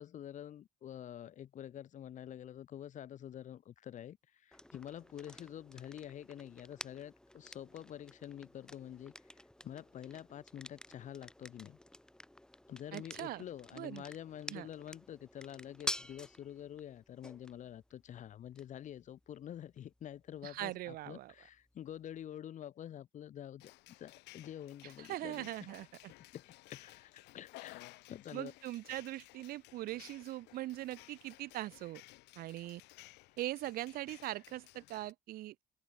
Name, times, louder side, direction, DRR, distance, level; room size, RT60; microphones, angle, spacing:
voice 1, 0.0-4.2 4.4-9.1 9.6-11.8 12.7-23.7 24.0-25.7 26.3-28.5, left 10 dB, 45° left, 0.7 m, -47 dB
sound 1, 4.5-22.2, left 1 dB, 5° left, 1.2 m, -50 dB
voice 2, 12.9-13.4 13.7-14.0 14.5-14.7 20.4-21.3 24.8-26.1 28.3-32.0 32.4-32.8 33.4-35.5, right 16 dB, 60° right, 0.4 m, -41 dB
sound 2, 23.6-35.1, left 21 dB, 90° left, 2.5 m, -57 dB
open air
cardioid pair, 110°, 17 cm